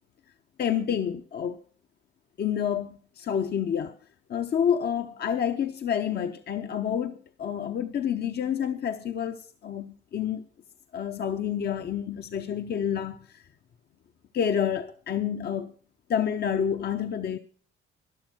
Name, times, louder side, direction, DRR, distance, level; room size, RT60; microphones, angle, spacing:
voice 1, 0.6-1.6 2.4-4.0 4.3-10.4 10.9-13.4 14.3-15.7 16.1-17.4, left 8 dB, 55° left, 0.8 m, -28 dB
12.0 x 11.5 x 6.3 m
cardioid pair, 90°, 20 cm